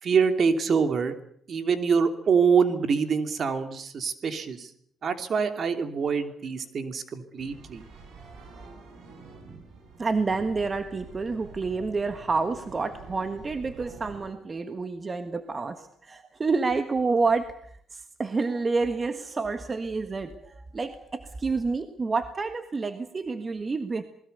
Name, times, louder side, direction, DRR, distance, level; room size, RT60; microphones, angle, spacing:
voice 1, 0.0-1.2 1.5-4.7 5.0-7.8, right 6 dB, 50° right, 8 dB, 2.9 m, -25 dB
sound 1, 7.4-14.2, right 4 dB, 70° right, 8.0 m, -47 dB
voice 2, 8.2-8.6 10.0-24.0, right 4 dB, 30° right, 9 dB, 1.5 m, -29 dB
28.0 x 20.5 x 6.8 m, 0.65 s
cardioid pair, 90°, 0 cm